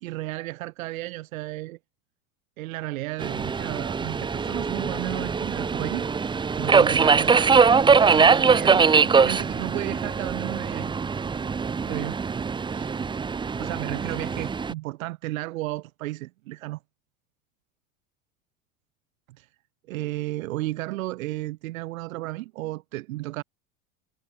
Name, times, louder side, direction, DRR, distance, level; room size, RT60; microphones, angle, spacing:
voice 1, 0.0-1.8 2.6-6.1 6.6-7.7 8.0-10.9 11.8-12.2 12.7-12.9 13.6-16.8 19.4-19.5 19.9-23.4, right 18 dB, 85° right, 1.2 m, -33 dB
Subway metro underground, 3.2-14.7, right 5 dB, 10° right, 0.5 m, -22 dB
supercardioid pair, 100°, 40 cm